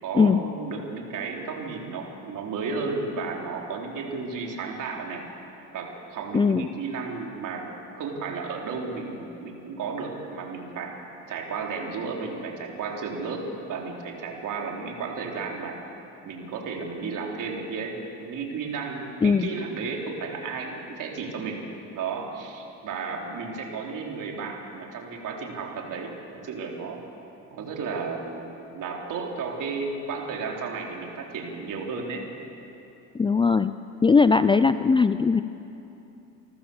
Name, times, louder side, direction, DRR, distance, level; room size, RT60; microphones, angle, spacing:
voice 1, 0.0-5.2 5.7-7.7 7.9-10.9 11.3-13.4 13.7-15.8 16.2-21.6 21.9-26.2 26.4-27.0 27.5-32.2, right 4 dB, 55° right, 0 dB, 4.1 m, -33 dB
voice 2, 6.3-6.7 19.2-19.5 33.1-33.7 34.0-35.4, left 5 dB, 15° left, 12 dB, 0.4 m, -19 dB
27.0 x 14.0 x 7.2 m, 2.9 s
supercardioid pair, 85°, 38 cm